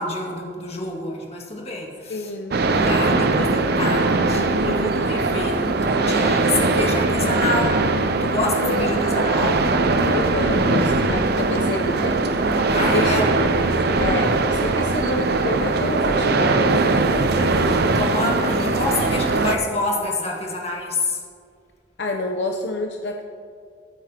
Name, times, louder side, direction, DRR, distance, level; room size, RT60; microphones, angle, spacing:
voice 1, 0.0-2.3 2.7-7.8 8.2-9.7 12.7-13.3 17.3-21.2, left 2 dB, 35° left, -1 dB, 2.0 m, -27 dB
voice 2, 2.1-2.6 8.6-9.3 10.1-12.2 12.9-13.6 14.0-16.9 22.0-23.2, left 2 dB, 70° left, 3 dB, 0.7 m, -28 dB
sound 1, 2.5-19.6, right 3 dB, 60° right, 0.7 m, -20 dB
20.5 x 9.0 x 2.9 m, 2.2 s
head